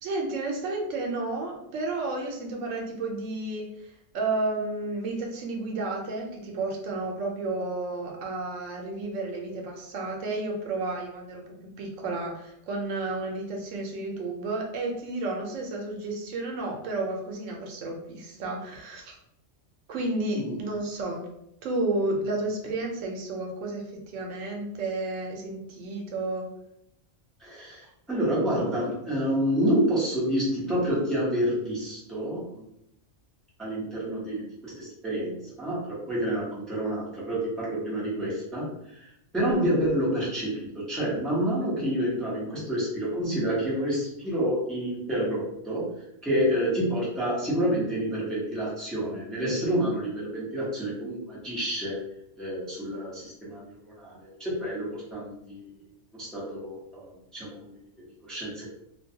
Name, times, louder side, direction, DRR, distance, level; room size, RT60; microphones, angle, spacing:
voice 1, 0.0-19.2 19.9-21.2 21.6-23.8 24.1-26.5, right 2 dB, 80° right, 1 dB, 0.9 m, -32 dB
voice 2, 27.4-32.6 33.6-35.8 36.1-45.9 46.2-52.0 52.4-55.7 56.2-57.8 58.2-58.7, equal, ahead, -8 dB, 0.7 m, -28 dB
2.5 x 2.2 x 2.7 m, 0.80 s
omnidirectional pair, 1.3 m